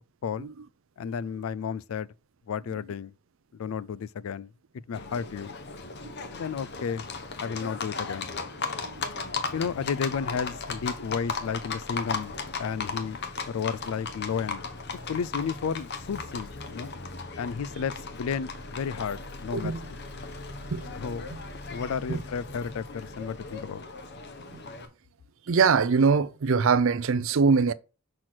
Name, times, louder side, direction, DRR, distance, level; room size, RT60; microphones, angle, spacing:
voice 1, 1.0-2.1 2.5-3.1 3.5-4.5 4.9-5.5 6.3-7.1 7.4-8.3 9.5-13.2 13.5-14.6 15.1-16.9 17.4-20.0 20.9-21.3 21.7-23.8, left 6 dB, 70° left, 0.3 m, -32 dB
Livestock farm animals working animals, 4.9-24.9, left 4 dB, 50° left, 1.0 m, -37 dB
voice 2, 25.5-27.7, right 5 dB, 60° right, 0.5 m, -23 dB
6.0 x 4.4 x 6.1 m
head